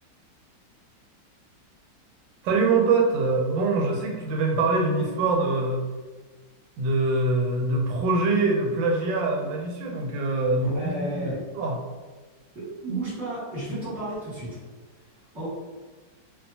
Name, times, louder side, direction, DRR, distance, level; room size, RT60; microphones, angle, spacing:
voice 1, 2.4-5.9 6.8-11.8, right 3 dB, 90° right, 0 dB, 1.3 m, -24 dB
voice 2, 10.7-11.4 12.5-14.6 15.3-15.5, right 1 dB, ahead, -10 dB, 0.9 m, -32 dB
2.8 x 2.3 x 2.7 m, 1.3 s
omnidirectional pair, 2.0 m